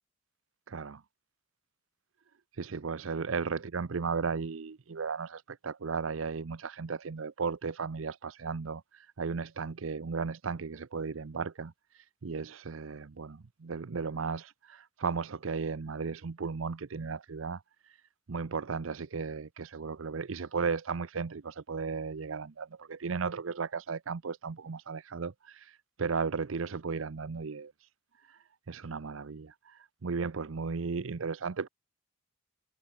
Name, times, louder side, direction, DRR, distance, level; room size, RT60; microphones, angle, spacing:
voice 1, 0.7-1.0 2.5-18.0 18.3-27.9 28.2-31.7, right 5 dB, 80° right, 0.6 m, -35 dB
head